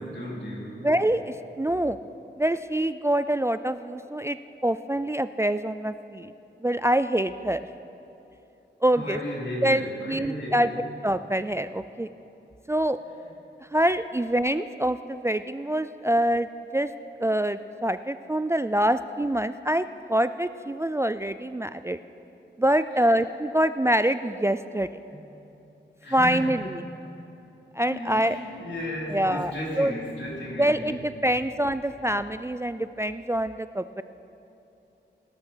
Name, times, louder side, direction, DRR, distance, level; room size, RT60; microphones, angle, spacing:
voice 1, 0.0-0.9 8.9-10.8 22.9-23.2 25.1-25.2 26.0-26.5 27.9-30.9, equal, 70° left, -4 dB, 3.7 m, -35 dB
voice 2, 0.8-2.0 2.4-4.4 4.6-6.3 6.6-7.6 8.8-9.2 9.6-10.7 11.0-12.1 12.7-13.0 13.7-16.5 16.7-16.9 17.2-22.0 22.6-24.9 26.1-26.8 27.8-28.4 29.1-29.5 29.8-29.9 30.6-34.0, right 1 dB, 15° right, 12 dB, 0.3 m, -25 dB
17.0 x 12.5 x 5.7 m, 2.9 s
wide cardioid pair, 85°, 20 cm